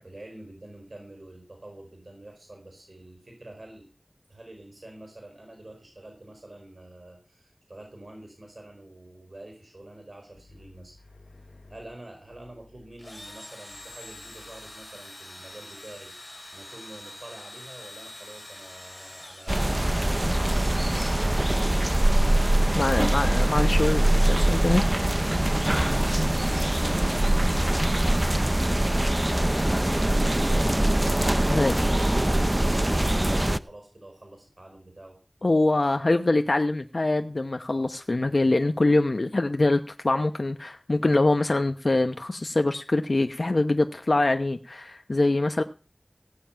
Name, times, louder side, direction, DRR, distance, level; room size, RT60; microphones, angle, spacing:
voice 1, 0.0-3.9 4.3-10.9 11.7-21.4 26.8-30.8 31.3-35.2, right 1 dB, 70° right, 3 dB, 4.9 m, -47 dB
Engine / Drill, 13.0-20.3, left 1 dB, 35° left, 4.5 m, -45 dB
sound 1, 19.5-33.6, right 1 dB, 30° right, 0.7 m, -23 dB
voice 2, 22.7-25.3 31.5-31.7 35.4-45.6, left 2 dB, 85° left, 7 dB, 0.9 m, -24 dB
17.0 x 9.0 x 5.7 m, 0.35 s
wide cardioid pair, 40°, 0 cm